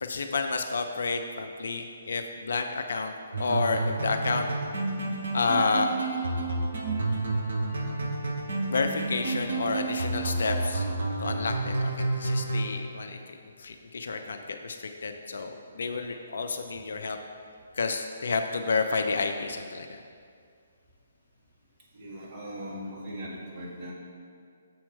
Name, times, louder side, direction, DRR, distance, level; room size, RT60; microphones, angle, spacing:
voice 1, 0.0-4.5 5.3-5.9 8.7-10.9 11.2-17.2 17.8-20.0, left 4 dB, 55° left, 5 dB, 0.4 m, -30 dB
sound 1, 3.3-12.6, right 2 dB, 60° right, 1.1 m, -30 dB
voice 2, 21.9-23.9, equal, 20° right, -8 dB, 1.8 m, -39 dB
7.0 x 4.3 x 5.4 m, 2.2 s
figure-of-eight pair, 135°, 0 cm